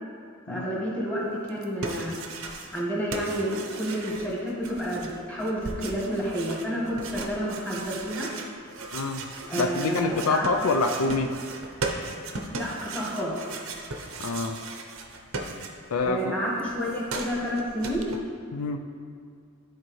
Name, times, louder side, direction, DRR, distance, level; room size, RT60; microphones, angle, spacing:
voice 1, 0.5-2.2 2.7-8.3 9.5-10.5 12.6-13.3 16.1-18.0, equal, 5° left, -6 dB, 1.4 m, -30 dB
metal soft scrape, 1.5-2.9 3.1-16.1 16.3-18.2, right 3 dB, 65° right, 0.7 m, -37 dB
voice 2, 8.9-9.2 9.6-11.3 14.2-14.6 15.9-16.2 18.5-18.8, left 3 dB, 90° left, 5 dB, 0.4 m, -26 dB
10.0 x 4.4 x 3.1 m, 2.3 s
head